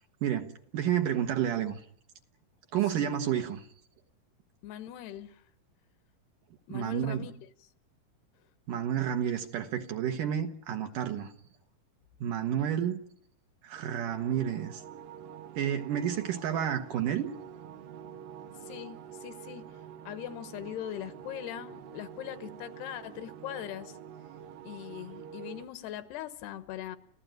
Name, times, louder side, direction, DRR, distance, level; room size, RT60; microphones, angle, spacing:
voice 1, 0.2-1.8 2.7-3.7 6.7-7.3 8.7-11.3 12.2-13.0 13.6-14.8 15.6-17.3, right 10 dB, 65° right, 2.3 m, -30 dB
voice 2, 4.6-5.4 6.7-7.3 7.6-7.7 18.6-19.7 20.0-24.0 24.6-27.0, left 12 dB, 80° left, 3.1 m, -41 dB
sound 1, 13.8-25.7, right 8 dB, 85° right, 3.6 m, -47 dB
29.5 x 15.0 x 9.2 m
omnidirectional pair, 4.7 m